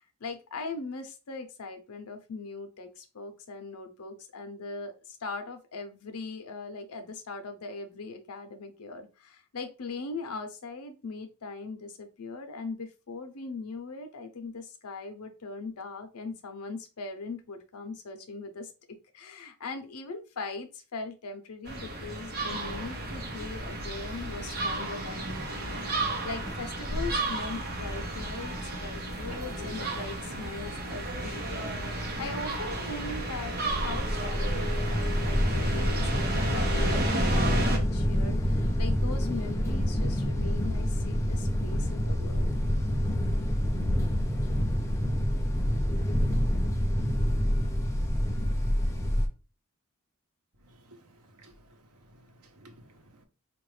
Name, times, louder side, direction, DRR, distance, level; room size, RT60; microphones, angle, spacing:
voice 1, 0.0-25.8 26.2-42.5, left 3 dB, 90° left, 0.7 m, -40 dB
sound 1, 21.7-37.8, right 1 dB, 45° right, 1.0 m, -33 dB
sound 2, 26.4-26.8 27.5-27.6 27.9-28.4 28.9-29.8 30.8-31.4, right 1 dB, 5° right, 1.5 m, -50 dB
sound 3, 33.7-49.3, equal, 15° left, 0.4 m, -27 dB
voice 2, 50.6-51.8 52.1-53.3, right 1 dB, 90° right, 0.9 m, -56 dB
4.5 x 2.5 x 3.2 m
head